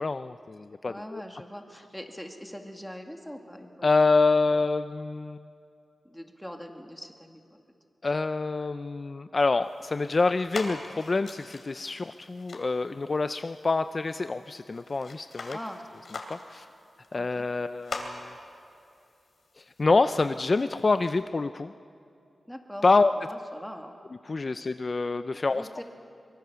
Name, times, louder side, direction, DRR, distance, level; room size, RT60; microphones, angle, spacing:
voice 1, 0.0-1.2 3.8-5.4 8.0-15.6 16.3-16.7 17.1-18.3 19.6-21.7 22.8-23.1 24.3-25.7, left 3 dB, 40° left, 11 dB, 0.5 m, -26 dB
voice 2, 0.8-4.4 6.0-7.4 15.5-15.8 17.1-17.4 22.5-22.9 23.2-23.9 25.5-25.8, equal, 5° left, 3 dB, 2.1 m, -42 dB
sound 1, 9.6-21.2, left 3 dB, 65° left, 2.9 m, -44 dB
24.0 x 22.0 x 6.9 m, 2.6 s
wide cardioid pair, 105°, 0 cm